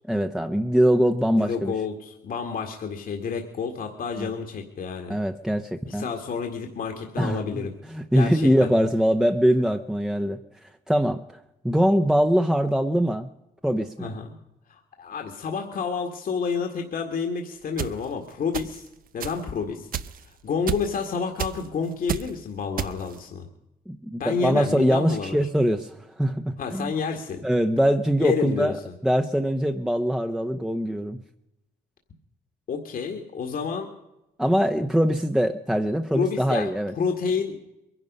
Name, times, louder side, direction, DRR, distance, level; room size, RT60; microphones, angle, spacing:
voice 1, 0.1-1.7 4.2-4.3 5.1-6.1 7.2-10.4 10.9-11.4 11.6-13.3 13.6-14.1 23.9-26.9 27.4-28.8 29.0-31.2 34.4-36.9, equal, 5° right, 6 dB, 0.8 m, -23 dB
voice 2, 1.4-5.2 5.9-7.7 8.1-8.7 14.0-14.4 14.7-18.9 19.1-19.9 20.3-23.5 24.2-25.4 26.6-27.4 28.2-28.9 32.7-33.9 36.1-37.6, left 5 dB, 60° left, 3 dB, 1.8 m, -29 dB
sound 1, 17.8-17.9 18.5-18.9 19.2-19.4 19.9-20.2 20.7-21.0 21.4-21.7 22.1-22.3 22.8-23.2, right 10 dB, 60° right, 0.7 m, -30 dB
22.0 x 11.0 x 5.4 m, 0.91 s
cardioid pair, 80°, 16 cm